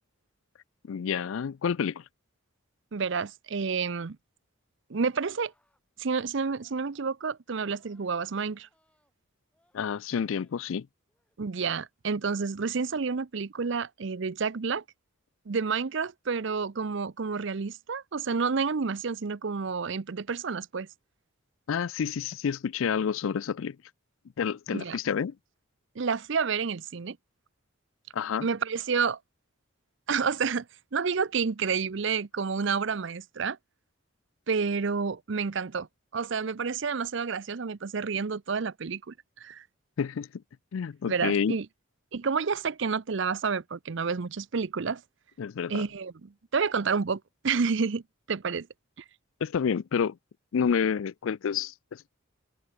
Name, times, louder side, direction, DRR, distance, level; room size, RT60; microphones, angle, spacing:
voice 1, 0.9-2.0 9.7-10.9 21.7-23.8 24.4-25.3 28.1-28.5 40.0-40.3 40.7-41.6 45.4-45.8 49.4-50.2 50.5-52.1, left 7 dB, 70° left, 0.4 m, -29 dB
voice 2, 2.9-4.2 4.9-5.5 6.0-8.7 11.4-14.8 15.5-20.9 24.7-25.0 26.0-27.2 28.4-29.2 30.1-30.6 30.9-33.6 34.5-35.9 36.1-39.6 41.1-41.7 42.1-45.0 45.7-48.0 48.3-48.7, right 5 dB, 60° right, 0.6 m, -29 dB
sound 1, 4.9-5.8 6.5-7.1 7.6-9.1 9.5-9.9 10.2-10.6 11.1-11.4, left 1 dB, 5° left, 6.1 m, -71 dB
open air
head